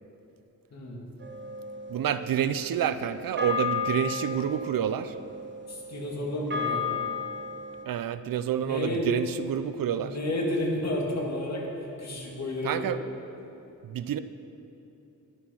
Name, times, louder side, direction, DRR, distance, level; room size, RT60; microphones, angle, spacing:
voice 1, 0.7-1.0 5.7-6.8 8.5-9.1 9.9-11.7 12.0-12.9, left 1 dB, 50° left, -1 dB, 2.2 m, -31 dB
sound 1, 1.2-7.8, left 5 dB, 35° right, 0.9 m, -34 dB
voice 2, 1.9-5.1 7.9-10.2 12.6-13.0 13.8-14.2, right 9 dB, 80° right, 12 dB, 0.5 m, -28 dB
11.0 x 9.9 x 5.6 m, 2.9 s
wide cardioid pair, 115°, 34 cm